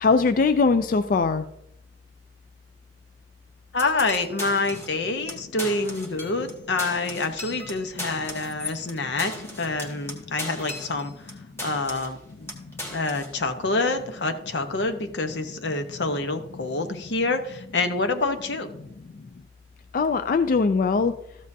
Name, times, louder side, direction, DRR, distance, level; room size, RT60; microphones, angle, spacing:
voice 1, 0.0-1.4 19.9-21.1, left 4 dB, 50° left, 10 dB, 0.4 m, -21 dB
voice 2, 3.7-11.1 11.6-18.7, left 3 dB, 85° left, 7 dB, 0.9 m, -27 dB
sound 1, 3.8-5.0 5.3-5.4 5.6-6.5 6.8-11.3 11.6-12.2 12.5-13.3, left 1 dB, 15° left, 1.5 m, -37 dB
13.5 x 7.4 x 2.7 m, 0.79 s
head